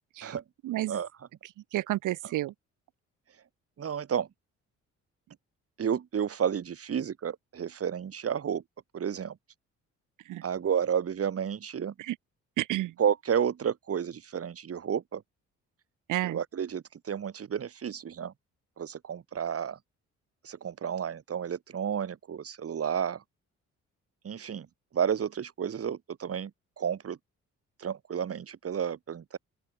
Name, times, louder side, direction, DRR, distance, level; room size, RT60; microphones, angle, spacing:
voice 1, 0.6-1.0 1.7-2.5 10.2-10.4 12.0-12.2 12.6-12.9 16.1-16.4, right 15 dB, 85° right, 2.9 m, -30 dB
voice 2, 3.8-4.3 5.8-8.6 8.9-9.4 10.4-11.9 13.0-15.2 16.2-18.3 18.8-19.8 20.4-23.2 24.2-24.7 24.9-26.5 26.8-27.2 27.8-29.4, right 8 dB, 50° right, 3.5 m, -31 dB
open air
cardioid pair, 90°, 30 cm